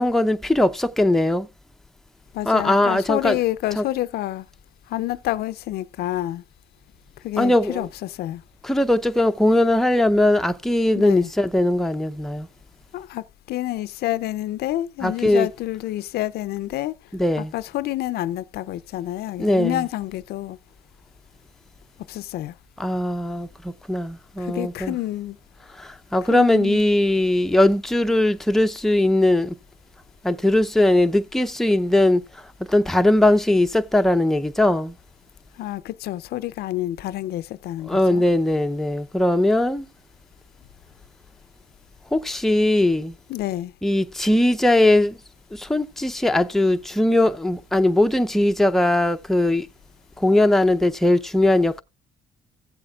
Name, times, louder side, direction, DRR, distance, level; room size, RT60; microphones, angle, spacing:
voice 1, 0.0-1.5 2.5-3.4 3.8-3.9 7.4-7.9 8.6-12.5 15.0-15.5 17.1-17.5 19.4-19.8 22.8-25.0 25.8-29.5 30.2-32.4 32.7-34.9 37.9-39.9 42.1-43.1 43.8-45.2 45.5-49.7 50.2-51.8, left 1 dB, ahead, 0.6 m, -20 dB
voice 2, 2.3-4.5 4.9-6.4 7.2-8.4 10.9-11.3 12.9-17.0 17.4-20.6 22.1-22.5 24.4-25.4 26.3-26.8 35.6-38.2 43.3-43.7, left 15 dB, 70° left, 0.5 m, -28 dB
15.5 x 7.7 x 2.3 m
cardioid pair, 110°, 17 cm